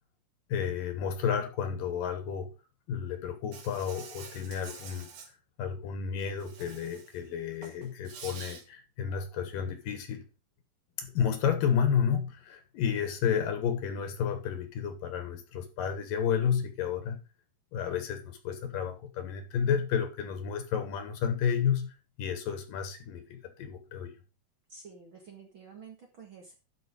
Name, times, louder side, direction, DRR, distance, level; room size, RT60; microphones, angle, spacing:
voice 1, 0.5-2.5 2.9-5.1 5.6-10.2 11.0-17.2 17.7-24.1, left 7 dB, 70° left, 2.9 m, -31 dB
Insect, 3.5-5.3 6.4-7.2 7.5-8.6, right 5 dB, 75° right, 3.9 m, -47 dB
voice 2, 24.7-26.5, right 5 dB, 45° right, 1.9 m, -50 dB
11.5 x 5.4 x 5.2 m
omnidirectional pair, 4.2 m